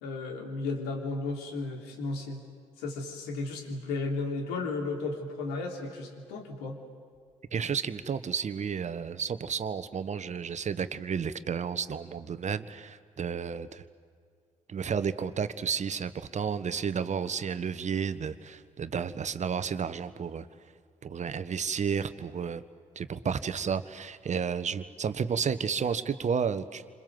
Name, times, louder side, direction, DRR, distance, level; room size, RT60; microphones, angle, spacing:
voice 1, 0.0-2.4 2.8-6.8, left 3 dB, 75° left, 4 dB, 3.2 m, -34 dB
voice 2, 7.5-13.8 14.7-20.5 21.0-22.6 22.9-26.8, right 6 dB, 45° right, 13 dB, 1.4 m, -32 dB
28.5 x 26.5 x 7.8 m, 2.1 s
hypercardioid pair, 45°, 17 cm